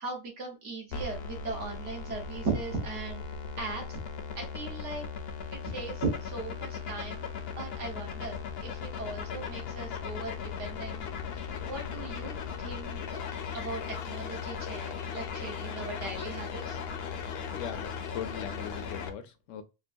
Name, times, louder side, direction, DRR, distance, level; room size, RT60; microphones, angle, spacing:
voice 1, 0.0-3.2 3.6-4.0 4.4-5.0 5.6-7.2 7.6-11.0 11.7-12.3 12.6-13.0 13.5-16.8, right 3 dB, 70° right, 1.4 m, -38 dB
sound 1, 0.9-19.1, left 6 dB, 65° left, 0.7 m, -38 dB
voice 2, 17.0-19.6, left 8 dB, 80° left, 0.9 m, -41 dB
3.7 x 2.2 x 2.6 m
omnidirectional pair, 1.3 m